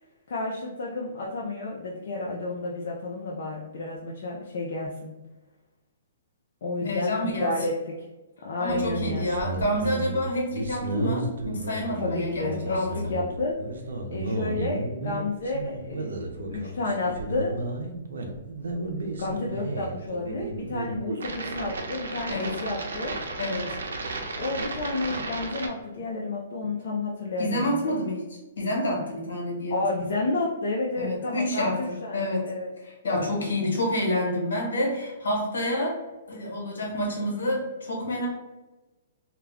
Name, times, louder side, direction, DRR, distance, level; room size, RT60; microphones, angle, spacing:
voice 1, 0.3-5.1 6.6-7.9 8.4-9.3 12.0-13.6 14.1-16.2 16.5-17.5 19.2-23.1 24.3-27.9 29.7-32.7, left 2 dB, 65° left, -3 dB, 0.5 m, -31 dB
voice 2, 6.8-7.6 8.6-12.9 22.3-22.5 23.4-23.7 27.4-29.8 30.9-32.4 32.8-36.0 36.3-38.3, left 1 dB, 85° left, -2 dB, 1.1 m, -28 dB
sound 1, 8.7-25.7, right 2 dB, 85° right, 0.5 m, -33 dB
2.3 x 2.2 x 3.4 m, 1.1 s
hypercardioid pair, 145°, 0 cm